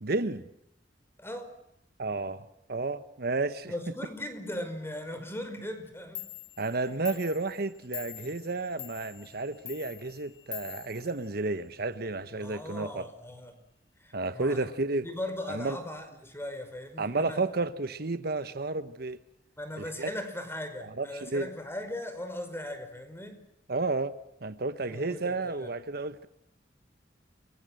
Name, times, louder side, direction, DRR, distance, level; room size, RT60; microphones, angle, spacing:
voice 1, 0.0-0.4 2.0-3.7 6.6-13.1 14.1-15.1 15.5-15.8 17.0-19.2 19.8-20.1 21.0-21.5 23.7-24.1 24.4-26.3, right 3 dB, 60° right, 1.2 m, -32 dB
voice 2, 1.2-1.5 3.7-6.2 6.9-7.0 8.2-8.4 12.4-13.5 14.0-14.8 15.0-17.4 19.6-23.4 24.8-25.7, left 1 dB, 15° left, 5.1 m, -39 dB
Clock, 5.8-5.9 6.2-11.8, left 15 dB, 75° left, 1.2 m, -45 dB
28.5 x 23.5 x 7.8 m
head